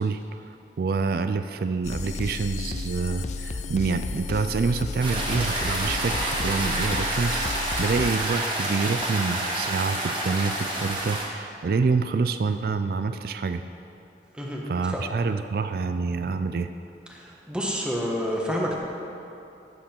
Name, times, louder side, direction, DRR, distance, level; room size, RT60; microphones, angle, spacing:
voice 1, 0.0-13.6 14.7-16.7, right 4 dB, 55° right, 9 dB, 0.3 m, -27 dB
sound 1, 1.8-8.2, left 3 dB, 40° left, 0.4 m, -32 dB
sound 2, 5.0-11.2, right 1 dB, 30° right, 1.6 m, -28 dB
voice 2, 17.5-18.7, equal, 5° right, -2 dB, 1.3 m, -28 dB
14.5 x 7.6 x 4.4 m, 2.8 s
head